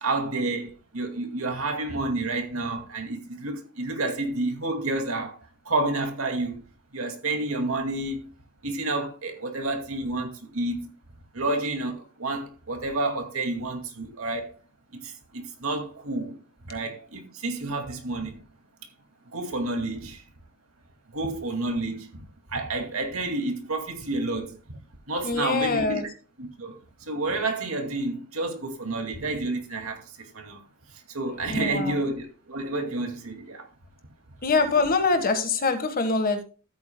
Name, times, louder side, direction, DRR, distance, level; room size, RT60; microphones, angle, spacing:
voice 1, 0.0-5.4 5.6-6.6 6.9-8.3 8.6-10.9 11.3-14.6 14.9-16.4 16.6-18.4 19.3-20.2 21.1-22.2 22.5-24.6 25.1-26.0 26.4-30.6 30.9-33.7, right 2 dB, 80° right, 2.3 m, -30 dB
voice 2, 25.2-26.1 31.5-32.1 34.4-36.4, left 4 dB, 45° left, 1.5 m, -24 dB
15.0 x 8.7 x 2.2 m
head